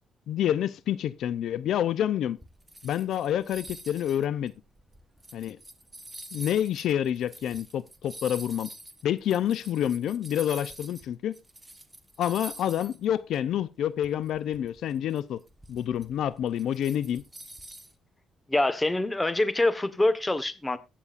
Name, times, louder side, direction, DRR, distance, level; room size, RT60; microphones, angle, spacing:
voice 1, 0.3-2.4 2.8-4.5 5.3-5.6 6.3-8.7 9.0-11.4 12.2-15.4 15.7-17.2, left 10 dB, 75° left, 0.4 m, -28 dB
sound 1, 2.4-11.1 11.3-13.1 13.3-13.5 14.0-18.0, right 1 dB, 10° right, 1.3 m, -46 dB
voice 2, 18.5-20.8, left 2 dB, 15° left, 1.2 m, -25 dB
21.5 x 7.2 x 2.5 m
cardioid pair, 90°, 0 cm